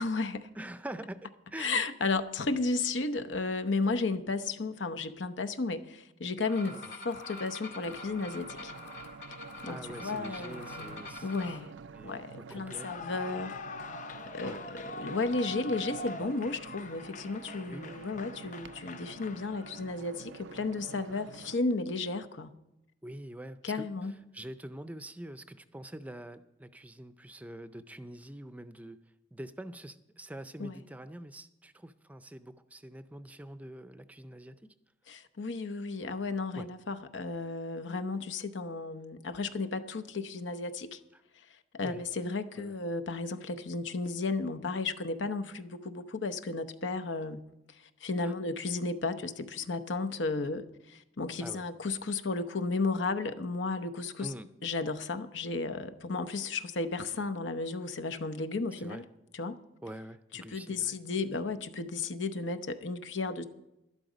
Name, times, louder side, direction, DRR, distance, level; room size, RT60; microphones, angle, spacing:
voice 1, 0.0-0.5 1.6-6.8 7.0-8.7 9.6-11.7 12.0-13.6 14.3-22.5 23.6-24.1 30.6-30.8 35.1-41.0 41.7-47.4 48.0-54.3 54.6-59.0 59.3-59.6 60.3-63.4, left 3 dB, 85° left, 0.8 m, -33 dB
voice 2, 0.5-1.8 6.7-6.9 9.7-11.3 11.9-12.9 14.4-14.6 17.7-18.0 21.1-21.2 23.0-29.0 29.3-34.6 36.6-36.7 41.1-41.2 41.8-42.0 42.6-42.7 48.2-48.3 51.4-51.6 54.2-54.5 58.8-59.0 59.8-60.9, right 1 dB, 10° right, 0.5 m, -45 dB
sound 1, 6.4-11.6, left 2 dB, 65° left, 2.3 m, -45 dB
sound 2, 7.8-21.6, right 5 dB, 80° right, 0.4 m, -49 dB
Clapping / Cheering / Applause, 12.6-20.0, left 2 dB, 45° left, 0.5 m, -44 dB
12.0 x 11.5 x 5.1 m
head